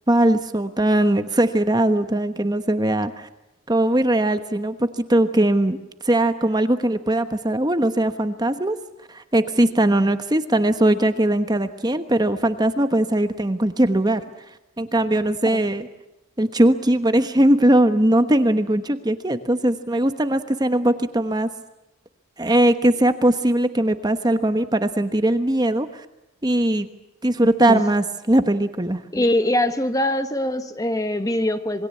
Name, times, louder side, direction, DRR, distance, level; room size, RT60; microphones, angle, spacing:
voice 1, 0.1-3.3 3.7-5.8 6.0-8.8 9.1-14.2 14.8-15.9 16.4-21.5 22.4-26.0 26.4-26.9 27.2-29.0, right 1 dB, 20° right, 9 dB, 1.1 m, -20 dB
voice 2, 29.1-31.9, left 1 dB, 15° left, 9 dB, 1.2 m, -22 dB
27.5 x 22.0 x 8.5 m, 0.92 s
head